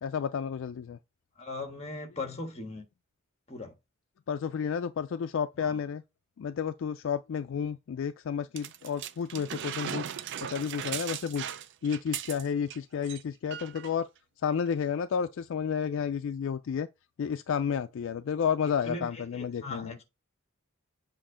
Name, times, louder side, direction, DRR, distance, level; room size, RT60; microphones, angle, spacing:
voice 1, 0.0-1.0 4.3-6.0 6.4-10.1 10.4-11.5 11.8-14.1 14.4-16.9 17.2-20.0, left 7 dB, 65° left, 0.3 m, -31 dB
voice 2, 1.4-2.8 3.5-3.7 5.5-5.8 18.8-20.0, left 2 dB, 30° left, 1.4 m, -39 dB
sound 1, 8.6-12.8 13.0-13.2 13.5-13.9 14.7-14.8, right 9 dB, 60° right, 0.4 m, -38 dB
7.5 x 2.6 x 4.9 m
head